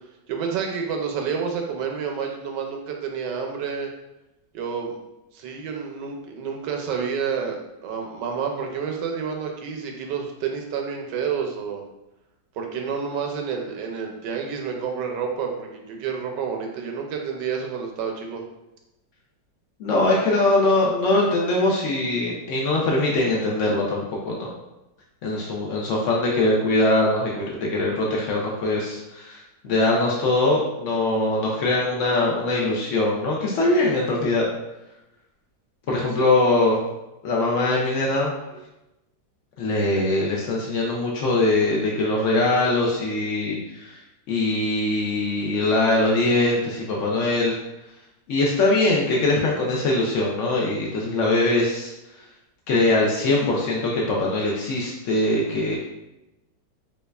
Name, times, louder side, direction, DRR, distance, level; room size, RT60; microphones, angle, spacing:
voice 1, 0.3-3.9 4.5-5.0 5.3-11.8 12.5-18.4 38.5-38.6, right 6 dB, 75° right, 2 dB, 1.2 m, -29 dB
voice 2, 19.8-24.5 25.2-34.4 35.9-36.8 37.2-38.3 39.6-44.0 44.3-47.6 48.3-51.9 52.7-55.8, left 2 dB, 80° left, -3 dB, 0.6 m, -22 dB
5.2 x 2.3 x 2.2 m, 0.95 s
omnidirectional pair, 1.9 m